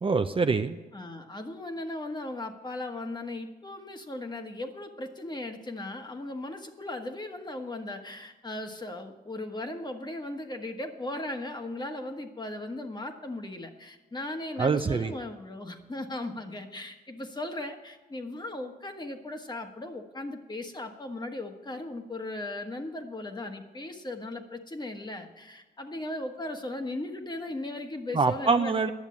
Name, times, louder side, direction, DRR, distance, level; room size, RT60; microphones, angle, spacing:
voice 1, 0.0-0.8 14.6-15.1 28.1-28.9, right 4 dB, 30° right, 8 dB, 0.5 m, -25 dB
voice 2, 0.9-28.7, left 2 dB, 25° left, 5 dB, 1.3 m, -37 dB
10.5 x 7.2 x 8.4 m, 1.2 s
cardioid pair, 80°, 17 cm